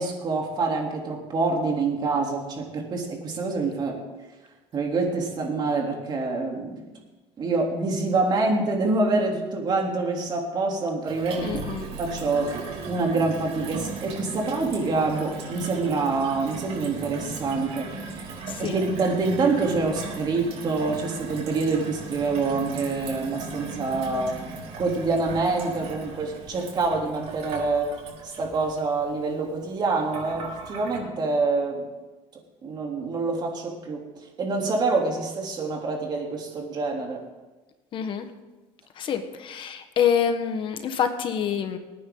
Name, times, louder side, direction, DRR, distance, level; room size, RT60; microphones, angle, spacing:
voice 1, 0.0-4.0 4.7-6.8 7.4-11.6 12.0-18.3 18.6-24.4 24.7-27.9 28.2-31.9 32.6-34.0 34.4-37.2, right 3 dB, 40° right, 0 dB, 3.4 m, -26 dB
Gurgling / Water tap faucet / Sink (filling or washing), 11.1-31.0, right 4 dB, 70° right, 5.0 m, -38 dB
voice 2, 11.4-11.9 18.5-18.7 37.9-38.3 39.0-41.8, left 8 dB, 50° left, 7 dB, 1.4 m, -26 dB
26.0 x 9.7 x 4.0 m, 1.2 s
cardioid pair, 125°, 11 cm